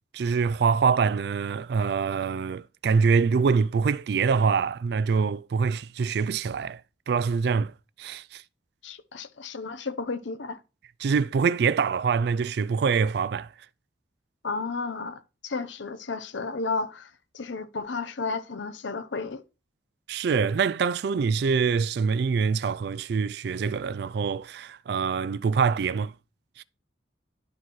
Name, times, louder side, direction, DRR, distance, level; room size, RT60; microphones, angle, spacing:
voice 1, 0.1-6.8 7.1-7.7 8.0-8.4 11.0-13.5 20.1-26.1 26.6-26.7, right 5 dB, 60° right, 0.3 m, -25 dB
voice 2, 8.8-10.6 14.4-19.4, left 4 dB, 80° left, 0.7 m, -33 dB
11.0 x 4.3 x 3.1 m
head